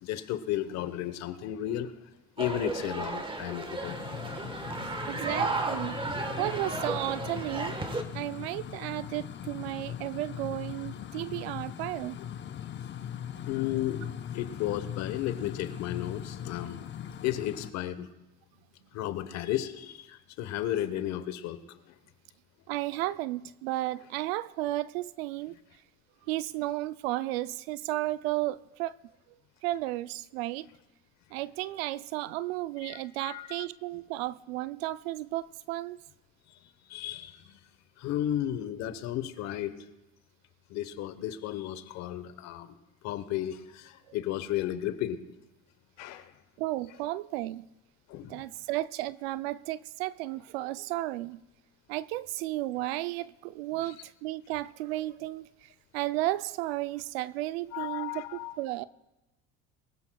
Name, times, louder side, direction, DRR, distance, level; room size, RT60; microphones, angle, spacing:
voice 1, 0.0-1.9 2.4-4.0 13.5-14.0 14.3-16.8 17.2-18.1 18.9-21.8 32.8-33.6 36.9-37.6 38.0-39.7 40.7-42.7 43.0-45.2 46.0-46.3 48.1-48.4 57.7-58.5, left 12 dB, 65° left, 1.1 m, -33 dB
sound 1, 2.4-8.0, right 3 dB, 15° right, 1.3 m, -34 dB
sound 2, 3.8-17.7, left 9 dB, 35° left, 0.8 m, -40 dB
voice 2, 5.1-6.0 6.4-7.8 8.1-12.2 22.7-25.5 26.3-29.0 29.6-30.7 31.3-36.0 44.1-44.2 46.6-47.6 48.3-51.4 51.9-58.9, right 17 dB, 85° right, 0.5 m, -33 dB
23.0 x 15.0 x 2.3 m
supercardioid pair, 90°, 30 cm